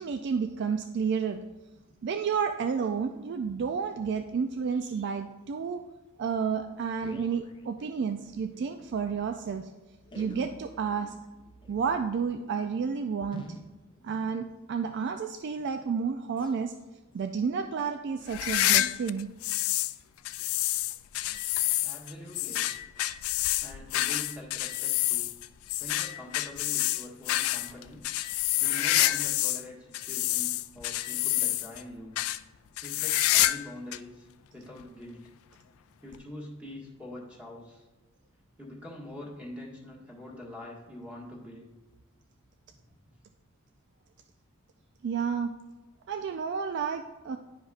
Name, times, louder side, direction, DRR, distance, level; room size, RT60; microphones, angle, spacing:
voice 1, 0.0-1.4 2.0-5.8 6.2-9.7 10.2-11.1 11.7-13.5 14.0-16.7 17.1-19.3 45.0-45.5 46.1-47.4, right 6 dB, 55° right, 7 dB, 0.3 m, -31 dB
sound 1, 6.6-8.7 9.0-9.1 9.3-9.4 10.0-15.1 15.5-15.9 16.3-16.6 17.1-17.3 17.8-18.0 18.6-18.7, left 1 dB, 25° left, 0.7 m, -49 dB
sound 2, 18.3-20.0 20.3-29.6 29.9-31.8 32.2-32.4 32.8-33.7 33.9-34.0 34.8-34.9 36.1-36.2, left 15 dB, 75° left, 0.3 m, -28 dB
voice 2, 21.8-22.7 23.6-25.3 25.8-28.0 28.6-32.2 32.8-34.3 34.5-35.2 36.0-37.8 38.6-41.7, left 1 dB, 5° right, -4 dB, 1.7 m, -44 dB
10.5 x 5.1 x 2.5 m, 1.1 s
head